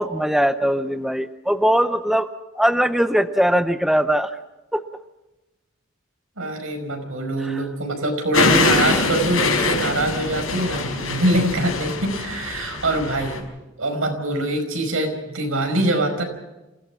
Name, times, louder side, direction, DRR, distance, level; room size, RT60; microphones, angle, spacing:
voice 1, 0.0-2.3 2.6-4.3 4.7-4.8 7.5-7.6, equal, ahead, 10 dB, 0.6 m, -20 dB
voice 2, 6.4-13.5 13.8-16.2, right 1 dB, 90° right, 5 dB, 5.1 m, -23 dB
sound 1, 8.3-13.4, left 3 dB, 85° left, 4.9 m, -23 dB
28.0 x 16.5 x 5.9 m, 1.0 s
head